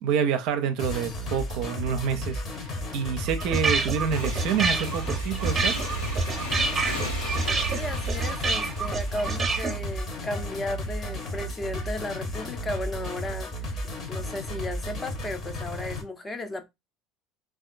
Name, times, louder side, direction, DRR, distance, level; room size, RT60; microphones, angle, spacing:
voice 1, 0.0-5.8, right 7 dB, 60° right, 0.5 m, -28 dB
sound 1, 0.8-16.0, equal, 40° left, 1.0 m, -34 dB
sound 2, 3.2-9.8, right 4 dB, 30° right, 0.7 m, -28 dB
Motorcycle / Engine, 4.0-10.3, right 1 dB, 85° left, 1.2 m, -35 dB
voice 2, 7.7-13.7 14.1-16.7, left 1 dB, 20° left, 0.6 m, -34 dB
3.5 x 2.4 x 2.4 m
figure-of-eight pair, 70°, 0 cm